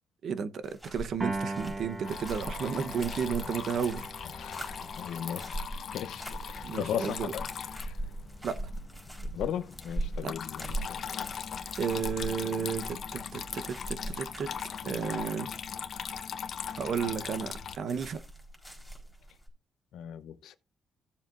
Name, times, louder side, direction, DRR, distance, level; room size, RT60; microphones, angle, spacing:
voice 1, 0.2-4.1 6.6-7.3 8.4-8.7 10.2-10.3 11.2-11.3 11.8-14.5 14.8-15.5 16.7-18.2, right 6 dB, 65° right, 0.8 m, -33 dB
sound 1, 0.6-19.5, right 1 dB, 5° right, 4.1 m, -42 dB
Piano, 1.2-7.6, right 2 dB, 25° right, 4.1 m, -41 dB
Water tap faucet / Trickle dribble, 2.0-17.8, left 7 dB, 60° left, 0.9 m, -40 dB
voice 2, 4.2-5.6 5.9-8.0 9.3-11.0 19.9-20.6, left 9 dB, 85° left, 0.8 m, -37 dB
15.5 x 7.4 x 2.5 m
cardioid pair, 95°, 0 cm